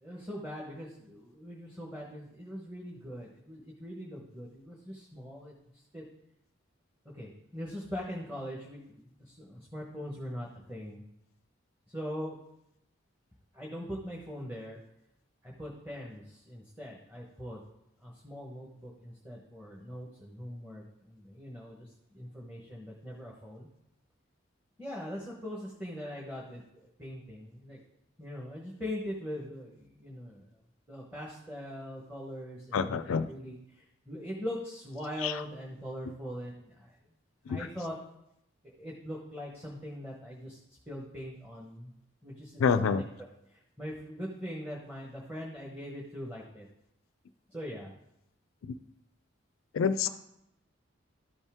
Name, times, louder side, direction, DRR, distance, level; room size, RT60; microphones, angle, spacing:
voice 1, 0.0-5.5 5.9-6.0 7.1-11.0 11.9-12.4 13.5-14.8 15.4-17.6 18.0-21.9 22.1-23.7 24.8-27.8 28.2-30.5 30.9-33.0 33.3-36.9 37.5-38.0 38.6-40.6 40.9-41.9 42.2-42.9 43.5-46.7 47.5-47.9, equal, 10° right, -3 dB, 1.1 m, -41 dB
voice 2, 32.7-33.3 35.2-35.3 37.5-37.7 42.6-43.0 49.7-50.1, left 6 dB, 85° left, 12 dB, 0.4 m, -27 dB
13.0 x 5.4 x 3.5 m, 0.80 s
head